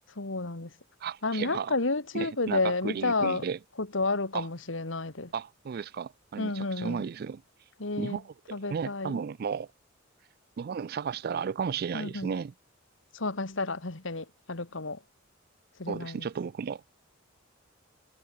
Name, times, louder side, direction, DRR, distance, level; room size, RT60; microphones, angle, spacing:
voice 1, 0.2-0.7 1.2-3.4 3.8-5.3 6.4-7.0 7.8-8.2 8.5-9.2 11.9-12.3 13.1-15.0 15.8-16.3, left 3 dB, 65° left, 1.9 m, -31 dB
voice 2, 1.0-1.7 2.1-3.6 4.3-4.5 5.3-7.4 8.0-8.2 8.5-9.7 10.6-12.5 15.9-16.8, right 6 dB, 50° right, 0.4 m, -34 dB
head